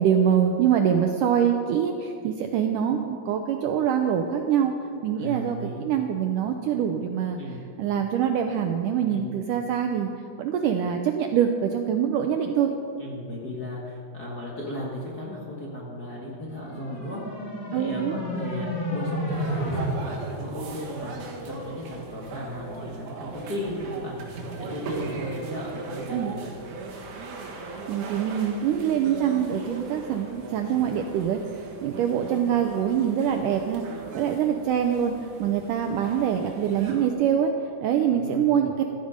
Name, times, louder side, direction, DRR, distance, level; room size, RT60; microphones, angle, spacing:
voice 1, 0.0-4.7 5.0-7.4 7.8-10.1 10.4-12.7 17.7-18.2 26.1-26.3 27.9-31.4 31.8-33.8 34.1-35.1 35.4-37.5 37.8-38.7, right 8 dB, 75° right, 4 dB, 1.9 m, -24 dB
voice 2, 5.1-5.9 7.4-7.7 9.0-9.4 13.0-26.6 38.1-38.6, left 1 dB, 35° left, -4 dB, 1.6 m, -36 dB
sound 1, 16.5-19.8, equal, 75° left, 6.7 m, -31 dB
sound 2, 19.3-37.1, right 3 dB, 60° right, 2.9 m, -38 dB
16.0 x 14.0 x 5.1 m, 2.5 s
omnidirectional pair, 4.4 m